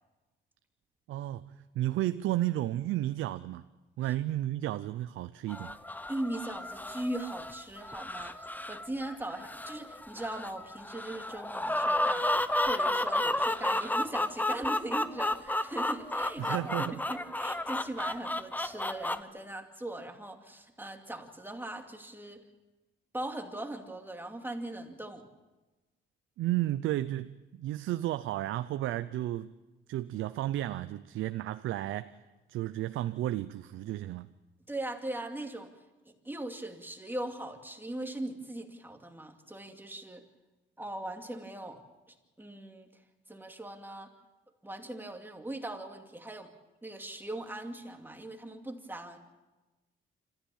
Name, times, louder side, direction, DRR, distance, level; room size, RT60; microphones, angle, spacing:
voice 1, 1.1-3.6 4.0-5.7 16.4-17.0 26.4-29.5 29.9-32.2 32.5-34.3, right 14 dB, 80° right, 0.6 m, -33 dB
sound 1, 5.5-19.2, left 1 dB, 10° left, 0.9 m, -32 dB
voice 2, 6.1-22.4 23.1-25.3 34.7-35.7 36.1-40.2 40.8-41.8 42.4-42.9 43.3-44.1 44.6-46.5 46.8-49.2, right 1 dB, 10° right, 2.5 m, -40 dB
26.0 x 14.5 x 7.1 m
cardioid pair, 90°, 20 cm